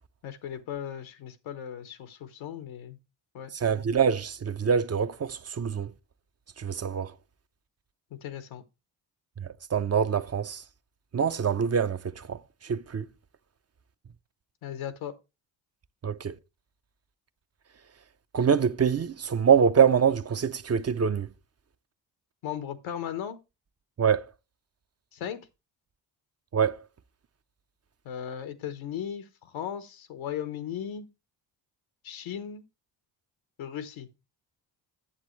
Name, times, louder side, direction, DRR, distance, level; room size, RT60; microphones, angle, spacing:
voice 1, 0.2-3.0 3.3-3.5 8.1-8.6 14.6-15.1 22.4-23.4 25.1-25.5 28.0-31.1 32.0-32.6 33.6-34.1, left 9 dB, 85° left, 1.1 m, -37 dB
voice 2, 3.5-5.9 6.6-7.1 9.7-10.6 11.1-12.0 12.3-12.4 12.7-13.1 16.0-16.3 18.3-21.3 24.0-24.3 26.5-26.8, right 7 dB, 35° right, 0.6 m, -24 dB
8.9 x 7.4 x 3.1 m
supercardioid pair, 45°, 47 cm